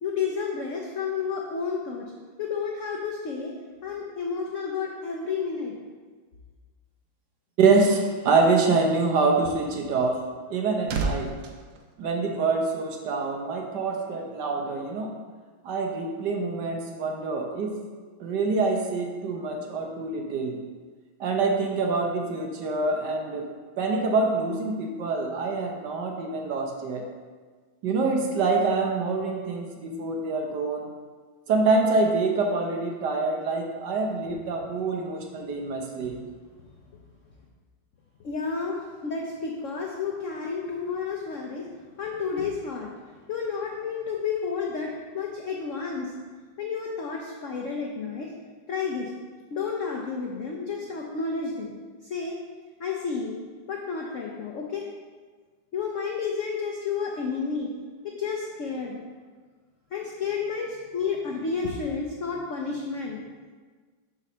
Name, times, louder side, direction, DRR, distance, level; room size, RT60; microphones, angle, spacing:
voice 1, 0.0-2.1 2.4-3.5 3.8-5.7 38.2-41.7 42.0-42.9 43.3-46.1 46.6-48.3 48.7-49.1 49.5-51.7 52.1-52.4 52.8-53.3 53.7-54.9 55.7-57.7 58.2-59.0 59.9-63.2, left 5 dB, 70° left, 0 dB, 0.7 m, -31 dB
voice 2, 7.6-10.2 10.5-11.3 12.0-15.1 15.6-17.8 18.2-20.6 21.2-23.5 23.8-27.1 27.8-30.9 31.5-36.2, right 3 dB, 65° right, 1 dB, 1.3 m, -25 dB
sound 1, 10.3-12.8 13.1-13.4, right 4 dB, 85° right, 1.5 m, -34 dB
5.4 x 4.1 x 6.0 m, 1.5 s
omnidirectional pair, 2.1 m